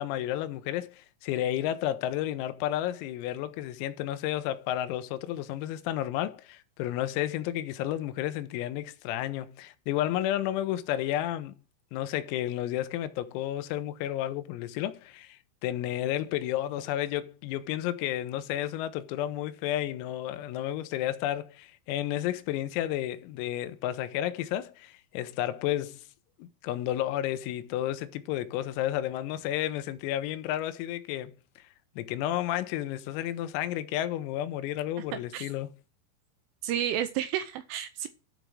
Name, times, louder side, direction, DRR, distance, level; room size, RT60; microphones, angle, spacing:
voice 1, 0.0-11.5 11.9-26.0 26.4-31.6 32.0-35.7, left 13 dB, 85° left, 3.5 m, -32 dB
voice 2, 35.1-35.5 36.6-38.1, right 10 dB, 85° right, 2.9 m, -31 dB
14.0 x 5.1 x 4.6 m
omnidirectional pair, 6.0 m